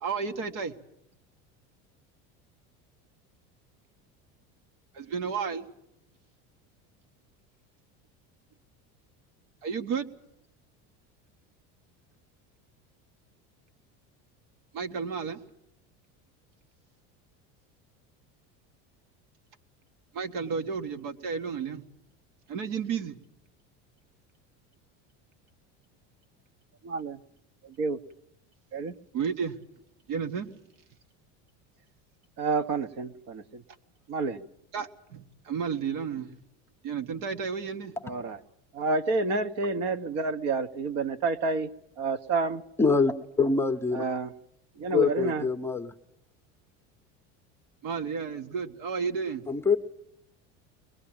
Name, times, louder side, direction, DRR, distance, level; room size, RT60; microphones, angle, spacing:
voice 1, 0.0-0.8 4.9-5.7 9.6-10.1 14.7-15.4 20.1-21.9 22.5-23.2 29.1-29.6 30.1-30.5 34.7-36.3 36.8-37.9 47.8-49.5, right 6 dB, 75° right, 7 dB, 1.8 m, -32 dB
voice 2, 26.8-27.2 27.6-28.0 28.7-28.9 32.4-33.6 34.1-34.4 38.0-38.4 38.7-41.7 42.0-42.6 43.9-44.3 44.8-45.5, right 3 dB, 50° right, 11 dB, 1.1 m, -29 dB
voice 3, 42.8-44.0 44.9-45.9 49.5-49.8, left 4 dB, 5° left, 6 dB, 0.9 m, -25 dB
22.5 x 20.0 x 8.8 m, 0.78 s
cardioid pair, 155°, 33 cm